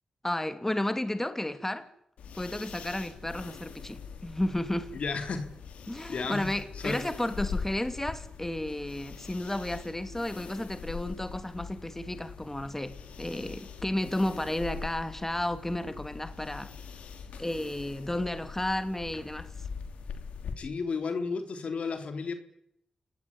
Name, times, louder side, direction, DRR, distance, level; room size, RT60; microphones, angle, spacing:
voice 1, 0.2-1.9 2.3-4.9 5.9-16.7 17.4-19.5, left 1 dB, 15° left, 2.9 m, -32 dB
sound 1, 2.2-20.5, left 6 dB, 85° left, 3.1 m, -42 dB
voice 2, 4.9-5.5 6.1-6.5 6.8-7.0 20.6-22.3, left 4 dB, 70° left, 3.5 m, -33 dB
28.5 x 19.5 x 10.0 m
supercardioid pair, 45°, 2 cm